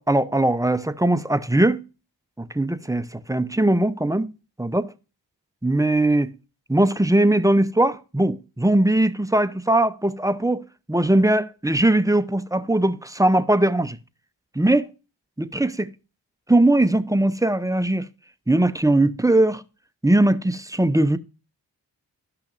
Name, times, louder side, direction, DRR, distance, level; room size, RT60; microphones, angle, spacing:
voice 1, 0.0-1.8 2.4-4.3 4.6-4.9 5.6-6.3 6.7-10.6 10.9-14.0 14.5-14.9 15.4-15.9 16.5-18.1 18.5-19.6 20.0-21.2, right 1 dB, 10° right, 0.7 m, -20 dB
13.0 x 5.8 x 2.5 m
cardioid pair, 40°, 43 cm